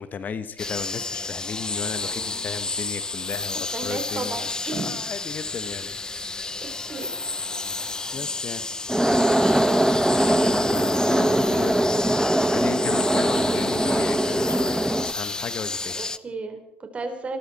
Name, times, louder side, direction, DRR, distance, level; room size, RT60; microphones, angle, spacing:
voice 1, 0.0-4.4 4.7-5.9 6.2-6.5 7.8-8.7 10.1-11.9 12.4-16.0, left 6 dB, 40° left, 13 dB, 1.1 m, -35 dB
sound 1, 0.6-16.2, left 3 dB, 15° left, 0.7 m, -31 dB
voice 2, 2.0-2.4 3.7-5.0 5.5-5.7 6.6-7.1 15.9-17.4, right 3 dB, 30° right, 6 dB, 3.8 m, -34 dB
sound 2, 8.9-15.1, right 1 dB, 5° right, 0.9 m, -21 dB
25.5 x 13.5 x 4.2 m, 0.86 s
hypercardioid pair, 70°, 4 cm